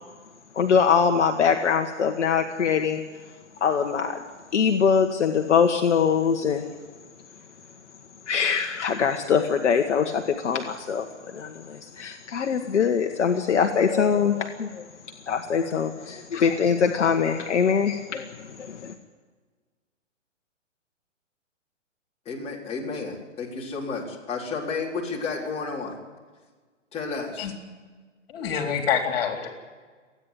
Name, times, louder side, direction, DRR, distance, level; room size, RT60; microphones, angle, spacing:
voice 1, 0.5-3.0 3.6-4.2 4.5-6.6 8.3-11.1 11.3-14.8 15.3-18.3 18.6-18.9, left 6 dB, 65° left, 4 dB, 1.6 m, -23 dB
voice 2, 22.2-26.0 26.9-27.5, left 4 dB, 15° left, -4 dB, 4.2 m, -32 dB
voice 3, 28.3-29.5, left 7 dB, 50° left, 3 dB, 3.8 m, -26 dB
27.5 x 9.9 x 9.9 m, 1.4 s
hypercardioid pair, 130°, 38 cm